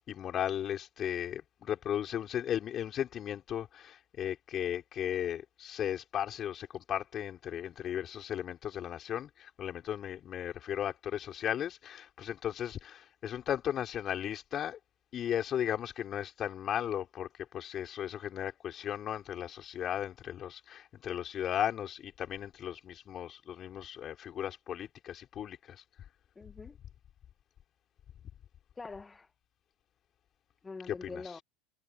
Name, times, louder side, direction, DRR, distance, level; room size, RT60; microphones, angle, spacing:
voice 1, 0.1-14.8 15.1-17.3 17.5-25.8 30.9-31.2, left 10 dB, 40° left, 5.3 m, -36 dB
voice 2, 26.4-26.8 28.8-29.3 30.6-31.4, left 4 dB, 15° left, 1.9 m, -44 dB
figure-of-eight pair, 75°, 0 cm